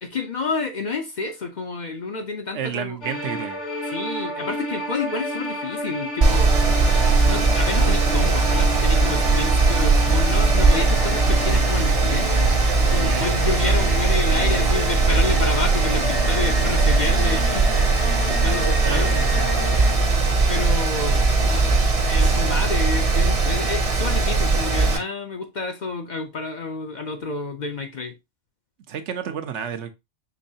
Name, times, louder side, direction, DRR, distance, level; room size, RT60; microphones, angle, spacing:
voice 1, 0.0-3.0 3.9-6.5 7.2-12.5 12.9-17.7 18.2-19.1 20.5-21.2 22.1-28.1, left 4 dB, 50° left, 0.6 m, -29 dB
voice 2, 2.5-3.6 13.0-13.3 18.8-19.5 28.9-29.9, right 8 dB, 75° right, 1.0 m, -30 dB
sound 1, 3.0-19.9, equal, 75° left, 1.9 m, -31 dB
Mechanical fan, 6.2-25.0, right 3 dB, 35° right, 0.7 m, -19 dB
5.4 x 3.2 x 2.7 m
omnidirectional pair, 1.2 m